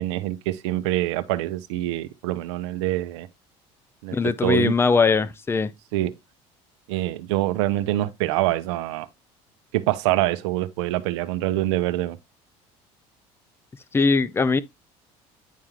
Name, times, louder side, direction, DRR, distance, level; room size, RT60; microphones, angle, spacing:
voice 1, 0.0-3.3 4.0-4.2 4.4-4.7 5.9-6.1 6.9-9.1 9.7-12.2, right 15 dB, 90° right, 0.7 m, -25 dB
voice 2, 4.1-5.7 13.9-14.6, left 4 dB, 15° left, 0.5 m, -20 dB
10.0 x 3.6 x 2.9 m
supercardioid pair, 95°, 14 cm